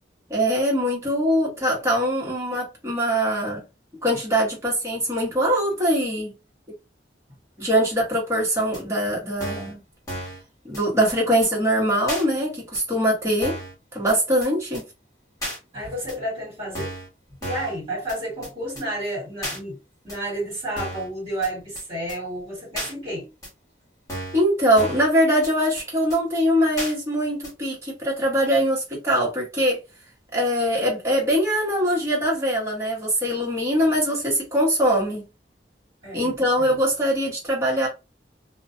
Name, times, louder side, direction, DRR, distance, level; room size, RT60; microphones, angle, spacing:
voice 1, 0.3-3.6 4.0-6.3 7.6-9.8 10.6-13.6 13.9-14.8 24.3-29.8 30.3-35.2 36.1-37.9, equal, 15° right, 1.1 m, -22 dB
sound 1, 8.7-8.8 9.4-9.7 10.1-10.4 10.7-10.8 11.1-11.2 11.4-11.5 12.1-12.2 12.7-12.8 13.4-13.7 14.1-14.2 14.4-14.5 14.7-14.8 15.4-15.6 16.1-16.2 16.7-17.1 17.4-17.8 18.1-18.2 18.4-18.5 18.8-18.9 19.4-19.6 20.1-20.2 20.8-21.1 21.4-21.5 21.8-21.9 22.1-22.2 22.8-22.9 23.4-23.5 24.1-24.4 24.8-25.1 25.4-25.5 25.8-25.9 26.1-26.2 26.8-26.9 27.4-27.5, equal, 20° left, 1.1 m, -33 dB
voice 2, 15.7-16.9 17.4-19.8 20.0-23.3 36.0-36.7, right 1 dB, 30° right, 1.4 m, -31 dB
2.4 x 2.1 x 2.5 m
head